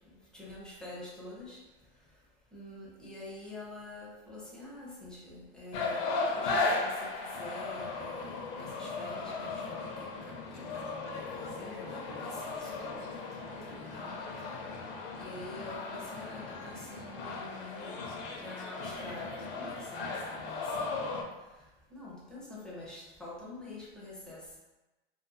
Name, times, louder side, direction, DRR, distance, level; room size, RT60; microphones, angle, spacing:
voice 1, 0.1-1.6 2.5-13.1 13.4-14.2 15.2-18.0 18.3-21.3 21.9-24.6, left 2 dB, ahead, -5 dB, 0.5 m, -47 dB
sound 1, 5.7-21.2, left 3 dB, 60° left, 0.6 m, -36 dB
2.5 x 2.4 x 2.7 m, 1.1 s
supercardioid pair, 130°, 30 cm